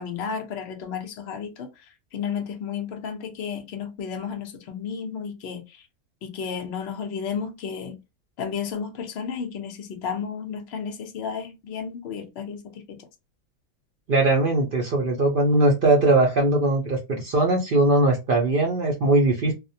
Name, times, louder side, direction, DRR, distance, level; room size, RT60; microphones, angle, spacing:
voice 1, 0.0-5.8 6.2-8.0 8.4-13.0, left 6 dB, 60° left, 0.7 m, -33 dB
voice 2, 14.1-19.5, right 2 dB, 65° right, 0.5 m, -20 dB
2.4 x 2.1 x 2.7 m
omnidirectional pair, 1.6 m